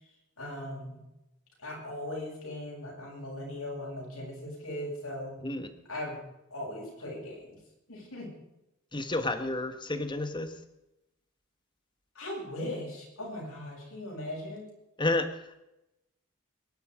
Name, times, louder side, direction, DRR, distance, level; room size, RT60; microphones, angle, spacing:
voice 1, 0.4-1.0 1.6-5.4 5.9-6.2 6.5-7.6 7.9-8.3 12.1-14.7, left 1 dB, 80° left, -3 dB, 7.8 m, -39 dB
voice 2, 5.4-5.7 8.9-10.5 15.0-15.6, left 2 dB, 20° left, 9 dB, 1.4 m, -31 dB
22.5 x 11.0 x 5.0 m, 0.91 s
head